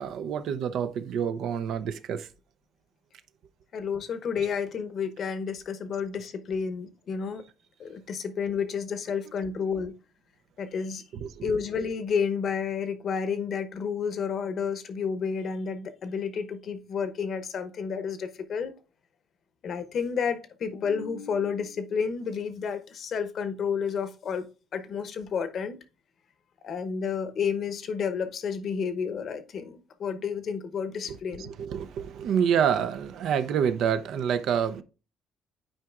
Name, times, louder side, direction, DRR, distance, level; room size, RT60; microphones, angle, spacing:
voice 1, 0.0-2.3 11.2-11.5 31.1-34.8, right 8 dB, 70° right, 0.5 m, -28 dB
voice 2, 3.7-7.4 7.8-9.9 10.6-11.0 11.4-18.7 19.6-24.5 24.7-25.8 26.6-31.5, left 6 dB, 55° left, 0.8 m, -31 dB
8.8 x 4.7 x 2.4 m
supercardioid pair, 85°, 0 cm